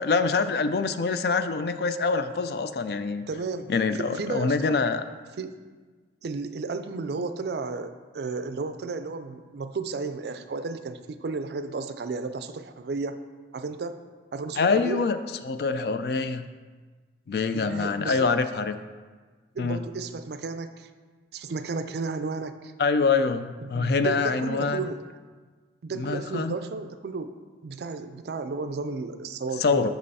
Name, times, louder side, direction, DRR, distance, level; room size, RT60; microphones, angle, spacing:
voice 1, 0.0-3.2 3.7-5.0 14.6-15.2 15.4-16.4 17.3-18.7 19.6-19.8 22.8-24.9 25.9-26.6 29.6-29.9, left 4 dB, 60° left, 10 dB, 0.3 m, -25 dB
voice 2, 3.3-4.8 5.4-5.5 6.2-13.2 13.5-14.0 14.3-15.0 17.5-18.3 19.5-20.9 21.3-22.7 23.6-25.0 25.8-27.3 27.6-29.9, right 4 dB, 65° right, 10 dB, 0.4 m, -33 dB
6.2 x 5.3 x 4.1 m, 1.4 s
head